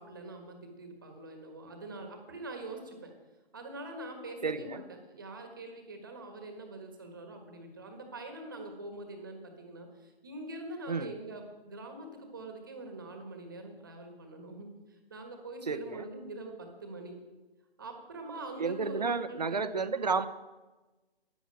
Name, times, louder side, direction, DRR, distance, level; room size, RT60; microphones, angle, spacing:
voice 1, 0.0-3.1 3.5-17.1 17.8-19.9, right 2 dB, 20° right, 5 dB, 1.5 m, -44 dB
voice 2, 4.4-4.8 10.9-11.1 15.7-16.1 18.6-20.3, right 4 dB, 40° right, 12 dB, 0.8 m, -31 dB
13.5 x 10.0 x 8.8 m, 1.2 s
hypercardioid pair, 175°, 31 cm